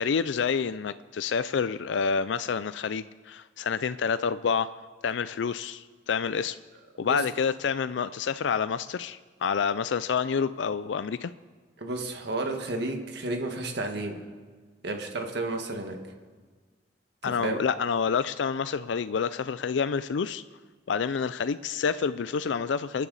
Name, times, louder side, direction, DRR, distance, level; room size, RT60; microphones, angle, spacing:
voice 1, 0.0-4.7 5.0-6.6 7.0-11.3 17.2-20.4 20.9-23.1, left 6 dB, 75° left, 13 dB, 0.4 m, -28 dB
voice 2, 11.8-14.2 14.8-16.0 17.2-17.6, right 2 dB, 65° right, 4 dB, 1.6 m, -32 dB
28.5 x 10.0 x 4.1 m, 1.5 s
head